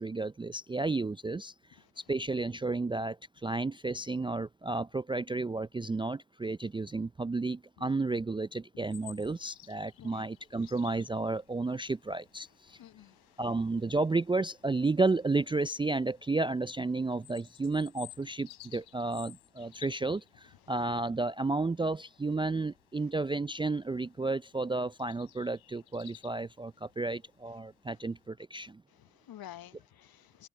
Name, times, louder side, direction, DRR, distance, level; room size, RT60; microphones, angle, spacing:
voice 1, 0.0-12.8 13.4-28.8, right 3 dB, 10° right, 0.4 m, -32 dB
sound 1, 8.9-28.3, left 16 dB, 70° left, 3.6 m, -57 dB
voice 2, 12.8-13.2 28.9-30.5, left 12 dB, 45° left, 0.9 m, -50 dB
hypercardioid pair, 55°, 49 cm